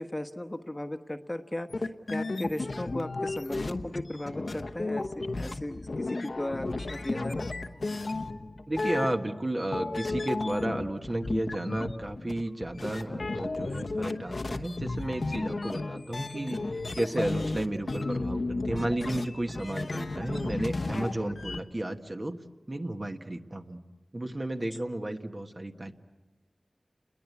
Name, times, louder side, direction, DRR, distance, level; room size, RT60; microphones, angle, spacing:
voice 1, 0.0-7.5, left 1 dB, 20° left, 7 dB, 1.2 m, -36 dB
sound 1, 1.7-9.5 9.7-21.6, left 2 dB, 70° left, 1.1 m, -34 dB
voice 2, 8.7-22.4 22.7-23.8 24.1-25.9, right 1 dB, 35° right, 4 dB, 1.5 m, -33 dB
29.0 x 21.5 x 8.4 m, 1.2 s
wide cardioid pair, 65°, 0 cm